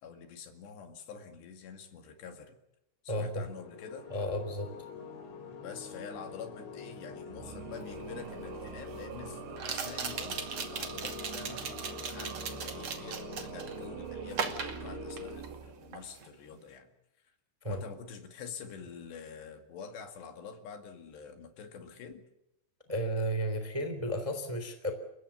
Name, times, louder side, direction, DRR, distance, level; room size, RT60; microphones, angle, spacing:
voice 1, 0.0-2.6 3.0-4.1 5.6-16.9 17.7-22.2, left 6 dB, 65° left, 6 dB, 4.1 m, -47 dB
voice 2, 3.1-3.4 4.1-4.7 17.6-17.8 22.9-24.9, equal, 10° right, 8 dB, 2.1 m, -33 dB
sound 1, 3.5-15.4, left 5 dB, 80° left, 5.4 m, -46 dB
sound 2, 7.3-16.3, right 9 dB, 70° right, 3.4 m, -45 dB
sound 3, 7.9-8.0 9.6-13.8 14.3-15.6 15.9-16.3, right 5 dB, 40° right, 2.7 m, -38 dB
29.5 x 16.0 x 8.4 m, 0.88 s
omnidirectional pair, 5.4 m